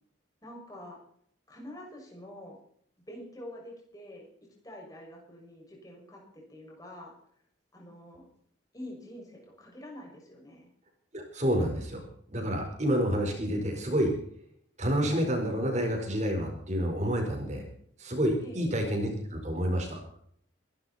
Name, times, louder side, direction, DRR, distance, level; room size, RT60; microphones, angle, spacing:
voice 1, 0.4-1.0 1.5-2.6 3.1-4.3 4.6-7.2 7.7-8.3 8.7-10.7 18.4-18.8, left 1 dB, 20° left, -1 dB, 6.4 m, -46 dB
voice 2, 11.1-12.0 12.3-14.1 14.8-17.6 18.0-20.0, equal, 35° right, 2 dB, 4.7 m, -29 dB
24.0 x 12.0 x 4.3 m, 0.65 s
head